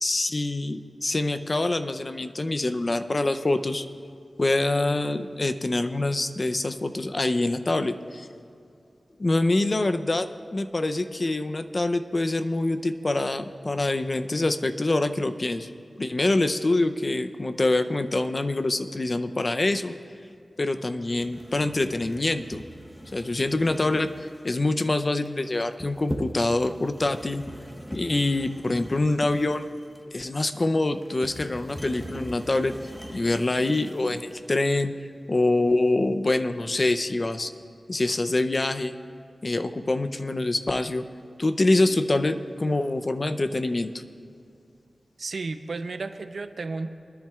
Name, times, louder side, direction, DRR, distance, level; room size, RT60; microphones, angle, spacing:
voice 1, 0.0-3.9 4.4-8.3 9.2-15.7 16.0-19.9 20.6-22.6 23.1-24.1 24.4-27.4 27.9-29.6 30.1-32.8 33.1-34.9 35.3-37.5 37.9-38.9 39.4-41.1 41.4-43.9, left 2 dB, 45° left, 9 dB, 0.6 m, -25 dB
sound 1, 21.1-34.4, equal, 10° left, 1.0 m, -41 dB
voice 2, 45.2-46.9, right 3 dB, 75° right, 9 dB, 0.6 m, -33 dB
24.0 x 10.5 x 2.4 m, 2.4 s
wide cardioid pair, 65°, 0 cm